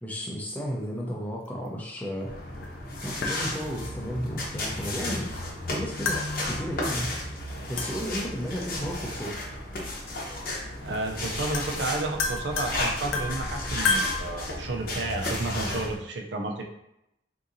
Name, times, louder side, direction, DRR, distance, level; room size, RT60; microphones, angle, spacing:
voice 1, 0.0-2.3 3.0-5.3 5.7-6.2 6.5-7.2 7.5-9.4, equal, 10° left, -2 dB, 0.5 m, -33 dB
sound 1, 2.3-16.0, left 1 dB, 50° left, 0.7 m, -33 dB
sound 2, 2.6-2.7 3.2-4.0 6.1-6.9 7.8-8.3 9.8-9.9 10.9-11.0 11.2-14.2, left 3 dB, 90° left, 0.4 m, -32 dB
voice 2, 10.8-16.6, right 2 dB, 70° right, 3 dB, 0.5 m, -31 dB
3.8 x 2.7 x 2.6 m, 0.83 s
head